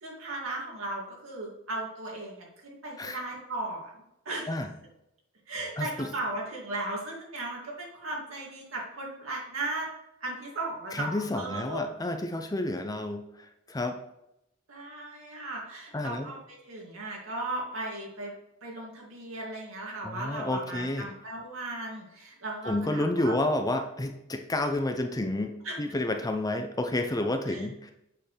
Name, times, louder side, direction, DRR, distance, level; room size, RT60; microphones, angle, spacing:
voice 1, 0.0-3.9 4.3-4.5 5.5-9.9 10.2-11.9 14.7-18.3 18.6-23.3 25.6-25.8 27.5-27.7, right 2 dB, 75° right, -2 dB, 2.5 m, -36 dB
voice 2, 5.8-6.1 10.9-13.3 13.7-14.0 15.9-16.3 20.0-21.1 22.6-27.9, left 1 dB, 20° left, 6 dB, 0.6 m, -30 dB
7.8 x 6.8 x 3.4 m, 0.84 s
head